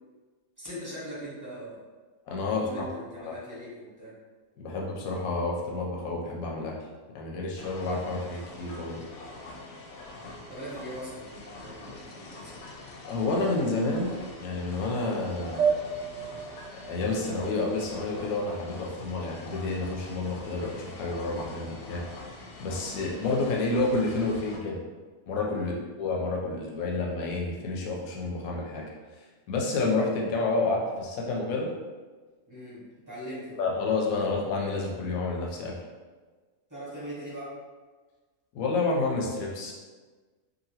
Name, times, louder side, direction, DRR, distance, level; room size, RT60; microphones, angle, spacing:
voice 1, 0.6-1.8 2.4-4.1 10.4-12.8 25.5-25.8 32.5-33.6 34.1-34.3 36.7-37.5, equal, 15° right, -9 dB, 0.8 m, -41 dB
voice 2, 2.3-2.9 3.2-3.3 4.6-6.7 7.1-9.0 13.1-14.1 14.4-15.7 16.9-22.1 22.6-24.8 25.3-25.7 26.0-28.9 29.5-31.7 33.6-35.8 38.5-39.7, left 3 dB, 90° left, -2 dB, 1.0 m, -29 dB
sound 1, 7.6-24.6, left 2 dB, 65° left, 0.8 m, -44 dB
sound 2, 15.6-18.5, right 6 dB, 70° right, 0.9 m, -31 dB
2.9 x 2.5 x 2.7 m, 1.4 s
omnidirectional pair, 1.4 m